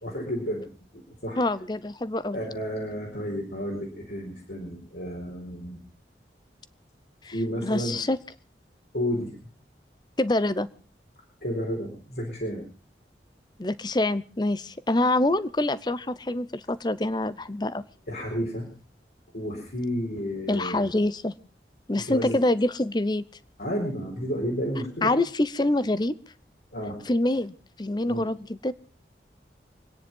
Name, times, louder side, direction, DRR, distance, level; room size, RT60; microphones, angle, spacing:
voice 1, 0.0-0.6 0.9-1.5 2.3-5.8 7.3-8.0 8.9-9.3 11.4-12.6 18.1-18.7 19.3-20.9 22.0-22.4 23.6-25.1 26.7-27.0 28.0-28.3, equal, 65° left, -3 dB, 4.4 m, -31 dB
voice 2, 1.4-2.4 7.2-7.3 7.6-8.2 10.2-10.7 13.6-17.8 20.5-21.3 21.9-23.2 25.0-26.1 27.1-28.7, left 2 dB, 25° left, 16 dB, 0.7 m, -25 dB
25.5 x 10.0 x 5.4 m, 0.37 s
head